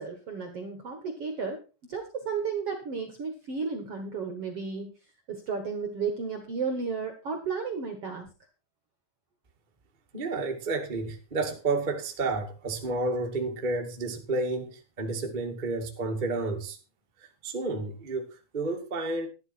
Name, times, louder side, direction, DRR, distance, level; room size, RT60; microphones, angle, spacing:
voice 1, 0.0-1.6 1.9-4.9 5.3-8.3, right 5 dB, 55° right, 1.7 m, -33 dB
voice 2, 10.1-16.8 17.4-19.3, right 3 dB, 30° right, 0.9 m, -31 dB
12.0 x 12.0 x 4.4 m
omnidirectional pair, 5.1 m